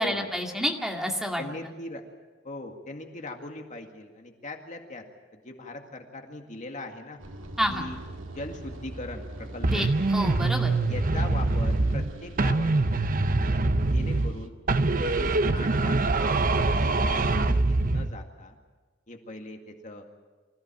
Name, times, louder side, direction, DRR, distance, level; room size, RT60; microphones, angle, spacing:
voice 1, 0.0-1.4 7.6-7.8 9.7-10.7, equal, ahead, 1 dB, 2.2 m, -29 dB
voice 2, 1.4-2.0 2.4-5.0 5.3-7.2 7.7-8.0 8.3-9.8 10.9-13.5 13.9-14.6 14.9-16.4 16.7-18.6 19.1-20.1, left 2 dB, 40° left, 3 dB, 2.1 m, -40 dB
sound 1, 7.2-14.5, right 1 dB, 75° right, 2.1 m, -42 dB
sound 2, 9.6-12.1 12.4-14.4 14.7-18.1, right 2 dB, 45° right, 0.8 m, -24 dB
25.5 x 15.0 x 9.1 m, 1.3 s
head